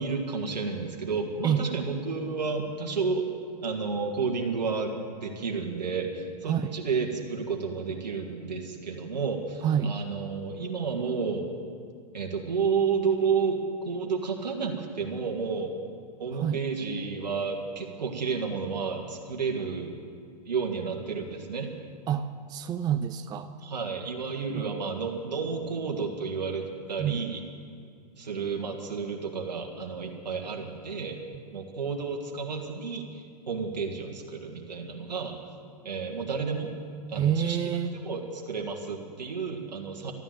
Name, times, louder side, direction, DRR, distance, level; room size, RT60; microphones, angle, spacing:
voice 1, 0.0-3.3 3.6-11.5 12.1-15.7 16.2-19.9 20.5-21.7 23.6-27.4 28.2-31.2 31.5-35.3 35.8-36.7 37.1-40.1, right 5 dB, 90° right, 2 dB, 1.8 m, -31 dB
voice 2, 9.6-9.9 16.3-16.6 22.1-23.5 24.5-24.7 27.0-27.2 37.2-38.0, right 9 dB, 20° right, 9 dB, 0.5 m, -27 dB
13.0 x 12.0 x 7.6 m, 2.3 s
hypercardioid pair, 120°, 21 cm